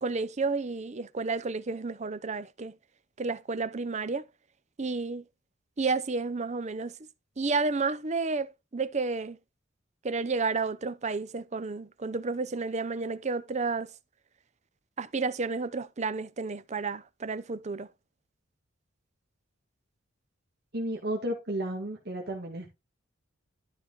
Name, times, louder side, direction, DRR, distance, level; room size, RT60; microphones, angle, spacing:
voice 1, 0.0-2.7 3.2-4.3 4.8-5.2 5.8-7.0 7.4-9.4 10.0-13.9 15.0-17.9, right 4 dB, 35° right, 0.6 m, -31 dB
voice 2, 20.7-22.7, right 1 dB, 55° right, 1.7 m, -33 dB
12.0 x 4.6 x 3.8 m
head